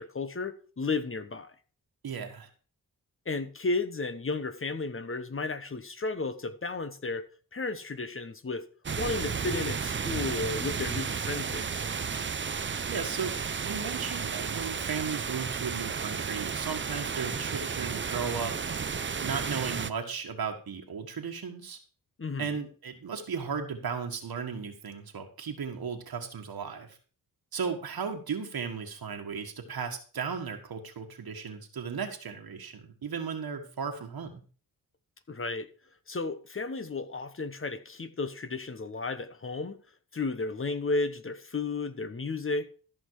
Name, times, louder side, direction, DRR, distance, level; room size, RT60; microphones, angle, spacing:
voice 1, 0.0-1.5 3.3-7.2 7.5-8.6 9.0-11.9 22.2-22.5 35.3-35.7 36.1-39.8 40.1-42.7, left 3 dB, 35° left, 1.1 m, -33 dB
voice 2, 2.0-2.5 12.9-13.3 13.6-18.6 19.2-21.8 22.4-27.0 27.5-34.4, right 6 dB, 70° right, 1.7 m, -35 dB
sound 1, 8.8-19.9, right 6 dB, 30° right, 0.6 m, -33 dB
14.0 x 5.7 x 4.8 m
cardioid pair, 70°, 38 cm